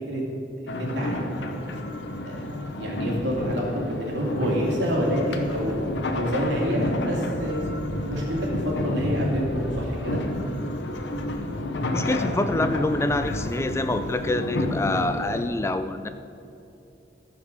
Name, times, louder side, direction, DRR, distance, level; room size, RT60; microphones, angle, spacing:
voice 1, 0.6-1.2 2.2-2.4 2.7-5.8 6.1-10.2, equal, 80° right, -3 dB, 2.8 m, -27 dB
sound 1, 0.7-15.4, left 1 dB, 85° left, 0.9 m, -30 dB
voice 2, 11.9-16.1, left 2 dB, 15° left, 10 dB, 0.3 m, -26 dB
14.5 x 5.3 x 6.6 m, 2.7 s
head